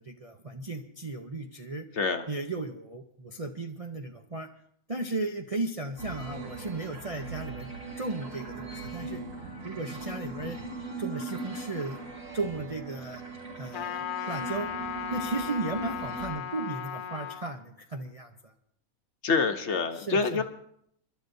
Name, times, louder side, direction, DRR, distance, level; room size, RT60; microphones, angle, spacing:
voice 1, 0.0-1.8 2.3-4.5 4.9-7.7 8.0-9.2 9.6-10.6 11.0-12.0 12.3-13.2 13.6-14.7 15.1-18.5 19.9-20.4, right 2 dB, 35° right, 2 dB, 0.6 m, -35 dB
voice 2, 2.0-2.3 19.2-20.4, left 4 dB, 55° left, 6 dB, 1.1 m, -26 dB
sound 1, 6.0-16.3, right 3 dB, 60° right, 3.5 m, -40 dB
Trumpet, 13.7-17.4, left 9 dB, 85° left, 1.3 m, -36 dB
29.5 x 12.0 x 2.7 m, 0.68 s
omnidirectional pair, 1.6 m